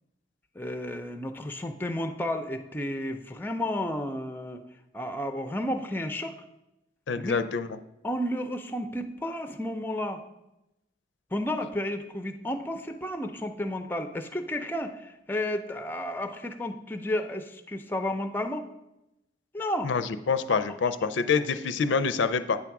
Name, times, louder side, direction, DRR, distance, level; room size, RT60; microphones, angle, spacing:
voice 1, 0.6-4.6 4.9-6.4 7.2-7.4 8.0-10.2 11.3-18.7 19.5-19.9 20.5-20.6, left 1 dB, 10° left, 8 dB, 0.4 m, -32 dB
voice 2, 7.1-7.7 19.8-22.6, left 5 dB, 85° left, 12 dB, 0.4 m, -26 dB
8.7 x 3.5 x 5.9 m, 0.91 s
head